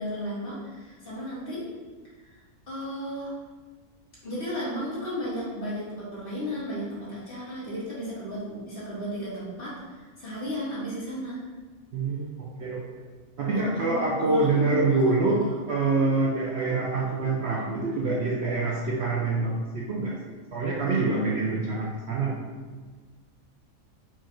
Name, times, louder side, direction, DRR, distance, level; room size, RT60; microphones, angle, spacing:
voice 1, 0.0-1.7 2.2-2.4 2.7-3.3 4.2-11.5 13.5-15.3, equal, 40° left, -9 dB, 1.7 m, -34 dB
voice 2, 11.9-13.0 13.4-15.4 15.7-22.5, right 3 dB, 60° right, -3 dB, 0.7 m, -26 dB
4.6 x 2.5 x 4.4 m, 1.4 s
omnidirectional pair, 1.5 m